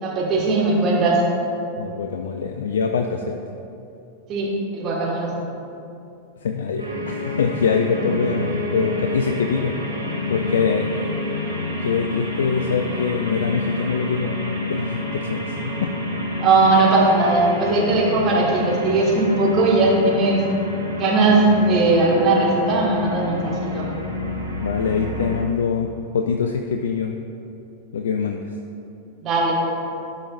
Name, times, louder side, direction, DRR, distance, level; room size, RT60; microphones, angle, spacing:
voice 1, 0.0-1.2 4.3-5.4 16.4-20.4 20.9-23.9 29.2-29.5, right 2 dB, 30° right, -3 dB, 1.6 m, -19 dB
voice 2, 1.8-3.4 6.4-9.8 10.3-11.3 11.8-15.9 24.5-27.2 27.9-28.4, left 6 dB, 65° left, 4 dB, 0.3 m, -24 dB
sound 1, 6.8-25.4, left 2 dB, 85° right, 1.2 m, -28 dB
12.0 x 5.3 x 2.5 m, 2.7 s
figure-of-eight pair, 90°, 0 cm